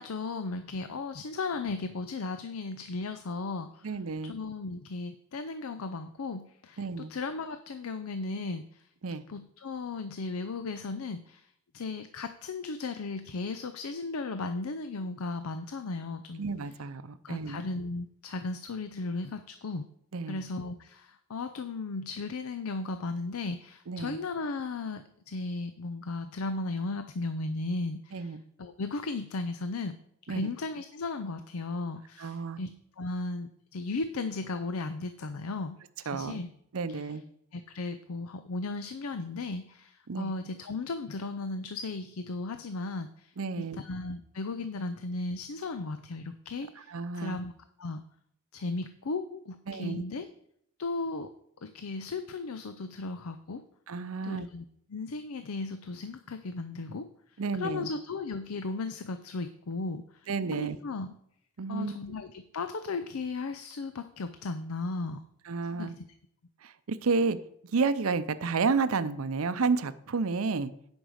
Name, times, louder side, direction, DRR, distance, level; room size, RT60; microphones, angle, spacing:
voice 1, 0.0-4.0 4.2-8.9 9.3-11.5 11.7-16.7 17.2-19.9 20.3-30.0 30.3-36.5 36.9-37.2 37.5-47.5 47.8-48.0 48.5-50.3 50.8-51.3 51.6-53.6 54.2-54.6 54.9-57.1 57.5-61.1 61.7-65.2 65.7-66.0, left 3 dB, 75° left, 10 dB, 0.5 m, -36 dB
voice 2, 3.8-4.3 6.8-7.1 9.0-9.2 16.4-17.6 20.1-20.4 23.9-24.2 28.1-28.4 30.3-30.4 32.2-32.6 36.1-36.4 36.7-37.2 40.1-40.3 43.4-43.8 46.9-47.4 49.7-50.0 53.9-54.5 57.4-57.9 60.3-60.8 61.6-61.9 65.5-65.9 66.6-67.4 67.7-70.7, right 4 dB, 70° right, 13 dB, 0.6 m, -31 dB
9.2 x 5.3 x 6.4 m, 0.72 s
head